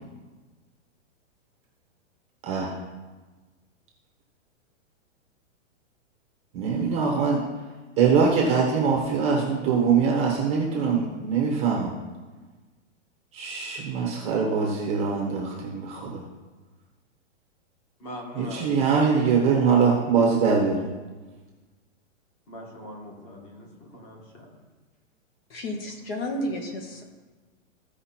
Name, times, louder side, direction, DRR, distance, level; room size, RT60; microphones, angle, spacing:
voice 1, 2.4-2.7 6.5-7.4 8.0-11.9 13.3-16.2 18.4-20.9, right 5 dB, 15° right, -2 dB, 0.9 m, -23 dB
voice 2, 18.0-18.7 22.5-24.6, left 1 dB, 25° left, -1 dB, 1.9 m, -41 dB
voice 3, 25.5-27.0, left 1 dB, 50° left, 3 dB, 1.7 m, -32 dB
14.5 x 4.9 x 4.4 m, 1.3 s
hypercardioid pair, 165°, 38 cm